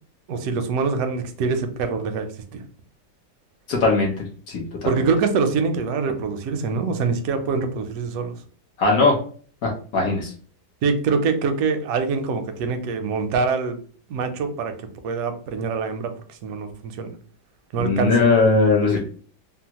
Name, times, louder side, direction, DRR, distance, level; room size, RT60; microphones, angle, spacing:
voice 1, 0.3-2.3 2.5-2.6 4.9-8.3 10.8-13.8 14.1-14.7 15.0-16.1 16.4-17.1 17.7-18.1, right 5 dB, 70° right, 7 dB, 0.9 m, -24 dB
voice 2, 3.7-4.1 4.5-5.1 8.8-9.2 9.6-10.3 17.8-19.0, left 3 dB, 60° left, -1 dB, 1.1 m, -19 dB
3.4 x 2.0 x 2.9 m, 0.43 s
omnidirectional pair, 1.8 m